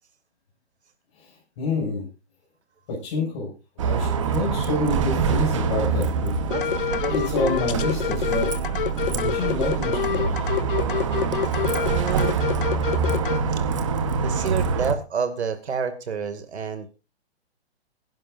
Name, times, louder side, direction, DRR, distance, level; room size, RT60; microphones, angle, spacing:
voice 1, 1.6-2.1 2.9-6.3 6.7-8.5 9.0-10.4, left 2 dB, 25° left, -1 dB, 6.2 m, -28 dB
Bus, 3.8-14.9, right 5 dB, 30° right, 1.1 m, -25 dB
sound 1, 6.5-13.4, left 9 dB, 55° left, 0.7 m, -27 dB
voice 2, 11.9-12.4 13.5-13.8 14.2-16.9, right 6 dB, 75° right, 8 dB, 2.4 m, -29 dB
24.0 x 10.5 x 2.6 m, 0.29 s
hypercardioid pair, 180°, 33 cm